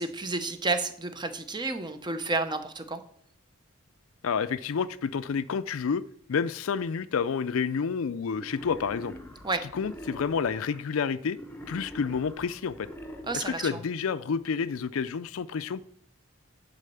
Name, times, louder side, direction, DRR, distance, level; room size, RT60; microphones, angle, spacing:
voice 1, 0.0-3.0 9.4-9.6 13.3-13.8, right 3 dB, 20° right, 8 dB, 0.8 m, -31 dB
voice 2, 4.2-6.0 6.3-9.1 9.7-11.4 11.7-12.9 13.3-15.8, left 6 dB, 70° left, 16 dB, 0.4 m, -29 dB
Wild animals, 8.3-10.8 11.3-13.8, equal, 10° left, 0.9 m, -44 dB
9.9 x 4.1 x 6.9 m, 0.69 s
head